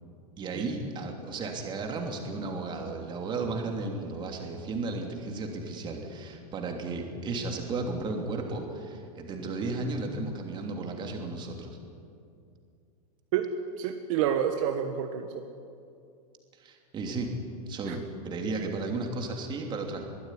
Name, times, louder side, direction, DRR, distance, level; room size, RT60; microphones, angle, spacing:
voice 1, 0.4-11.8 16.5-17.3 17.7-20.1, right 3 dB, 20° right, 2 dB, 3.0 m, -34 dB
voice 2, 13.8-15.4 17.9-18.0, right 9 dB, 55° right, 5 dB, 1.5 m, -28 dB
22.5 x 15.0 x 10.0 m, 2.5 s
supercardioid pair, 155°, 20 cm